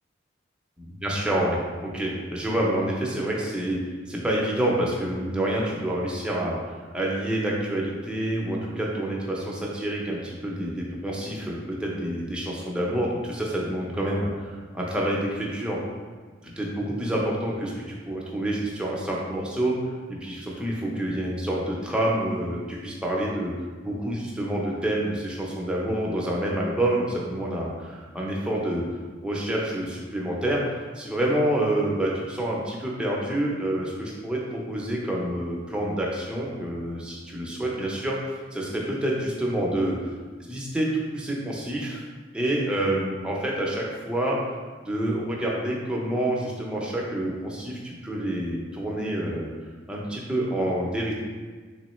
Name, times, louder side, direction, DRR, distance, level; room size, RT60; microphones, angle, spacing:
voice 1, 1.0-3.8 4.1-6.6 6.9-15.8 16.4-19.8 20.1-23.5 23.8-28.9 29.2-40.0 40.5-42.0 42.3-44.4 44.8-49.5 49.9-51.1, right 1 dB, 5° right, -4 dB, 0.5 m, -28 dB
3.6 x 3.1 x 3.0 m, 1.4 s
head